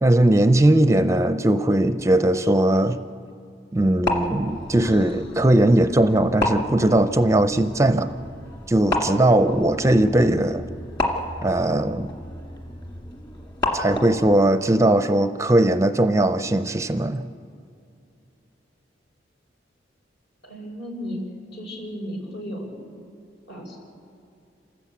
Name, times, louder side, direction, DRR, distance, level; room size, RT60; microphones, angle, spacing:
voice 1, 0.0-3.0 3.7-8.1 8.7-10.6 11.4-12.1 13.7-17.3, right 1 dB, 15° right, 10 dB, 0.5 m, -19 dB
sound 1, 3.8-14.3, left 2 dB, 25° left, 1.9 m, -31 dB
voice 2, 20.4-21.2 21.5-22.7 23.5-23.8, equal, 65° left, -1 dB, 5.9 m, -34 dB
28.0 x 13.5 x 8.3 m, 2.5 s
head